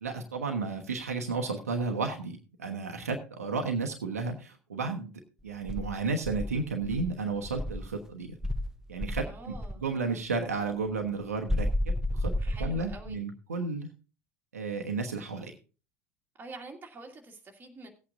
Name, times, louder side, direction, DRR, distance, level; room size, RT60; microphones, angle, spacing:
voice 1, 0.0-5.1 5.4-8.3 8.9-9.5 9.8-12.3 12.6-13.9 14.5-15.6, right 4 dB, 75° right, 4 dB, 1.1 m, -33 dB
Insect, 5.7-7.9 8.4-9.8 11.5-13.2, left 1 dB, 5° right, 0.6 m, -32 dB
voice 2, 9.2-9.8 12.4-13.2 16.4-17.9, right 2 dB, 25° right, 2 dB, 2.1 m, -46 dB
17.5 x 8.5 x 2.6 m, 0.34 s
figure-of-eight pair, 70°, 8 cm